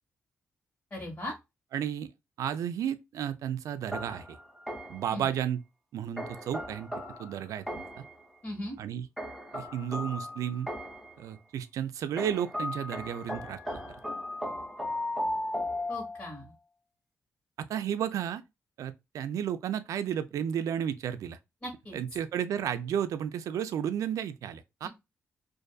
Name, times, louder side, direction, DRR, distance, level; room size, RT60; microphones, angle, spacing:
voice 1, 0.9-1.3 5.1-5.3 8.4-8.8 15.9-16.4 21.6-22.0 24.8-24.9, left 1 dB, 35° left, 1.3 m, -38 dB
voice 2, 1.7-2.1 2.4-4.4 4.9-5.6 5.9-6.9 7.2-8.0 8.8-9.1 9.5-10.7 11.2-13.8 17.6-18.4 18.8-21.4 21.9-24.9, right 9 dB, 80° right, 0.3 m, -33 dB
sound 1, 3.9-5.1 6.2-8.1 9.2-11.1 12.2-16.5, left 1 dB, ahead, 0.7 m, -36 dB
2.6 x 2.5 x 2.3 m
cardioid pair, 70°, 6 cm